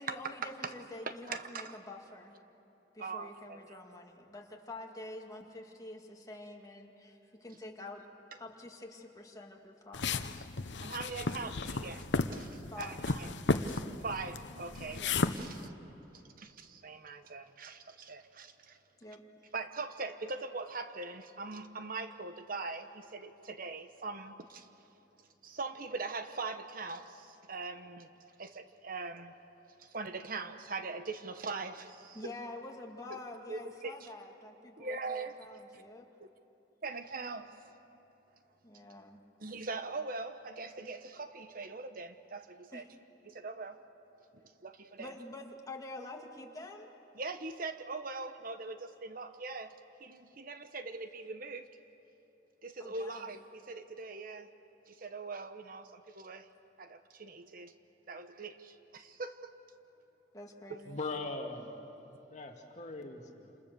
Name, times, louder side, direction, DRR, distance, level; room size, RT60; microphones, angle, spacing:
voice 1, 0.0-2.3 2.9-8.0 8.4-10.5 12.7-13.1 15.0-15.1 19.0-19.2 32.1-36.1 38.6-39.2 42.7-42.9 45.0-46.9 52.8-53.3 60.3-61.0, left 2 dB, 20° left, 0 dB, 2.4 m, -47 dB
voice 2, 1.1-1.7 3.0-3.8 10.8-12.1 12.3-13.3 13.6-15.0 15.3-15.7 16.4-18.8 19.5-24.7 25.4-28.1 28.4-29.3 29.8-32.2 33.5-34.1 34.8-35.4 35.7-35.8 36.2-36.3 36.8-37.6 39.4-42.8 43.3-43.8 44.3-45.1 47.2-49.7 50.0-51.7 52.6-54.5 54.9-56.5 56.8-57.7 58.1-59.5 60.7-60.8, right 3 dB, 55° right, 9 dB, 1.1 m, -41 dB
sound 1, 9.9-15.7, left 3 dB, 90° left, 0.9 m, -34 dB
voice 3, 60.9-61.8 62.3-63.5, left 3 dB, 40° left, 2 dB, 2.2 m, -40 dB
29.0 x 28.0 x 6.9 m, 2.9 s
head